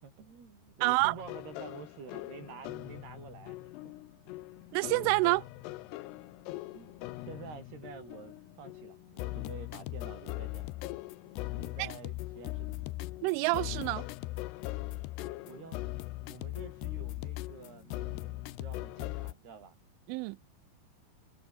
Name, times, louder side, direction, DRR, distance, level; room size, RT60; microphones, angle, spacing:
voice 1, 0.0-3.6 3.9-4.0 6.7-7.0 7.3-10.7 11.6-12.8 15.5-15.9 16.3-19.8, right 6 dB, 55° right, 7.0 m, -49 dB
voice 2, 0.8-1.2 4.7-5.4 11.8-11.9 13.2-14.1 20.1-20.4, right 25 dB, 90° right, 3.0 m, -27 dB
sound 1, 1.0-19.3, left 19 dB, 80° left, 2.5 m, -40 dB
omnidirectional pair, 5.5 m